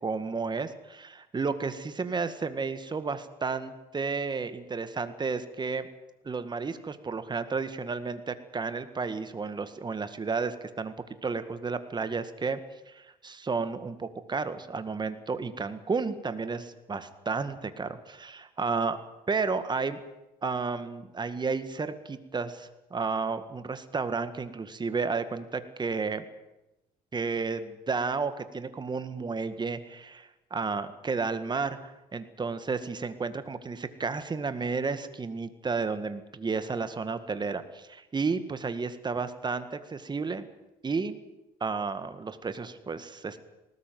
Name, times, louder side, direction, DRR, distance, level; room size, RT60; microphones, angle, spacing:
voice 1, 0.0-5.9 6.2-10.9 11.2-12.6 12.9-19.0 19.3-20.0 20.4-26.3 27.1-40.5 40.8-41.2 41.6-43.4, right 4 dB, 25° right, 11 dB, 2.0 m, -32 dB
19.5 x 18.5 x 9.5 m, 0.96 s
cardioid pair, 110°, 17 cm